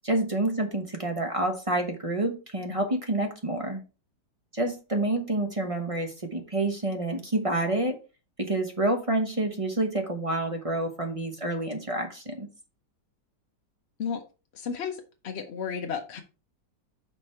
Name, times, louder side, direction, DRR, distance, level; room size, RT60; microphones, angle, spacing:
voice 1, 0.0-3.8 4.5-8.0 8.4-12.5, right 2 dB, 25° right, 5 dB, 0.9 m, -28 dB
voice 2, 14.5-16.2, left 6 dB, 50° left, 4 dB, 0.8 m, -33 dB
6.0 x 5.3 x 4.5 m, 0.32 s
omnidirectional pair, 1.9 m